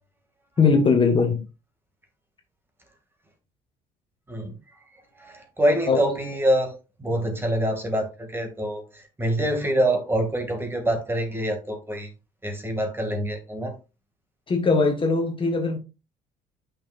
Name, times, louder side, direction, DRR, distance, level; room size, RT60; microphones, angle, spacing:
voice 1, 0.6-1.4 5.9-6.0 14.5-15.8, left 4 dB, 30° left, 1.4 m, -20 dB
voice 2, 4.9-12.1 12.4-13.8, right 1 dB, 15° right, 2.3 m, -26 dB
8.6 x 6.1 x 2.5 m
cardioid pair, 110°, 17 cm